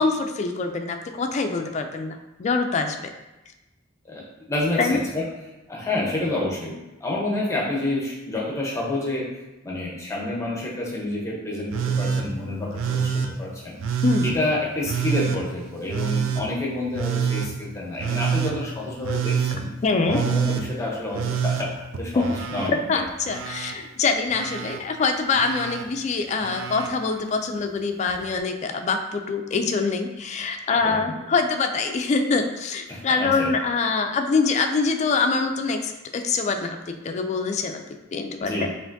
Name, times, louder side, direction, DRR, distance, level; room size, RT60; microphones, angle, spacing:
voice 1, 0.0-3.0 4.8-5.0 14.0-14.3 19.8-20.2 22.2-22.3 22.7-36.8 37.0-37.8 38.1-38.7, left 4 dB, 35° left, 5 dB, 0.3 m, -24 dB
voice 2, 4.0-5.3 5.7-9.3 9.6-13.8 14.2-19.7 20.1-21.7 22.0-23.0 30.8-31.0 32.9-33.5 38.4-38.7, left 2 dB, 15° left, -4 dB, 0.8 m, -28 dB
Telephone, 11.7-12.3 12.7-13.3 13.8-14.3 14.9-15.4 15.9-16.4 16.9-17.5 18.0-18.5 19.0-19.6 20.1-20.6 21.1-22.7 23.0-23.7 24.3-24.8 25.3-25.8 26.4-26.9 28.1-28.2, right 7 dB, 85° right, 0.4 m, -26 dB
5.6 x 2.5 x 2.6 m, 1.0 s
head